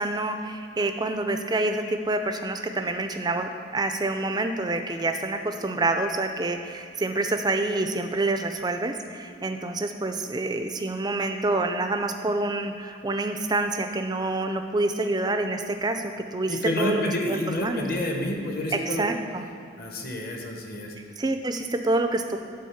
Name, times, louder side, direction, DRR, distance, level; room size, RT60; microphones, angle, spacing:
voice 1, 0.0-17.0 17.3-17.9 18.9-19.4 21.2-22.4, right 2 dB, 20° right, 7 dB, 0.4 m, -27 dB
voice 2, 16.5-19.1 19.8-20.9, left 1 dB, 45° left, 1 dB, 1.0 m, -29 dB
9.2 x 3.9 x 7.0 m, 2.5 s
head